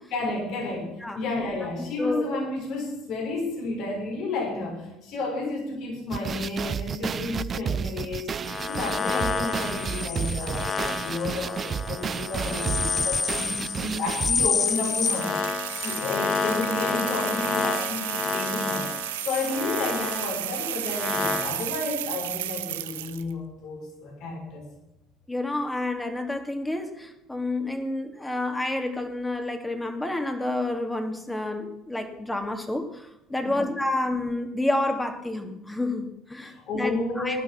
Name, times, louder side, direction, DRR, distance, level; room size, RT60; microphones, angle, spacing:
voice 1, 0.1-0.9 1.1-8.3 8.7-15.4 15.7-18.9 19.2-24.6 33.4-33.7 36.4-37.4, left 3 dB, 65° left, 0 dB, 6.2 m, -31 dB
sound 1, 6.1-14.5, right 7 dB, 40° right, 0.4 m, -31 dB
sound 2, 8.4-21.7, left 5 dB, 40° left, 1.7 m, -29 dB
sound 3, 14.6-23.3, right 14 dB, 80° right, 0.7 m, -33 dB
voice 2, 25.3-37.4, left 2 dB, 10° left, 6 dB, 2.7 m, -29 dB
16.0 x 11.0 x 6.0 m, 0.88 s
hypercardioid pair, 60°, 0 cm